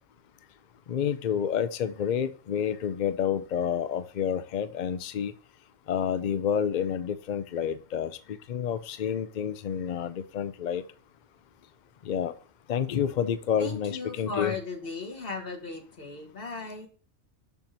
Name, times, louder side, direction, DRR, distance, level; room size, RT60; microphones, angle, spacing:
voice 1, 0.9-5.3 5.9-10.8 12.0-12.3 12.7-14.6, left 8 dB, 65° left, 12 dB, 0.4 m, -29 dB
voice 2, 13.6-16.9, left 4 dB, 45° left, 2 dB, 1.8 m, -36 dB
7.1 x 5.8 x 2.7 m, 0.39 s
omnidirectional pair, 1.4 m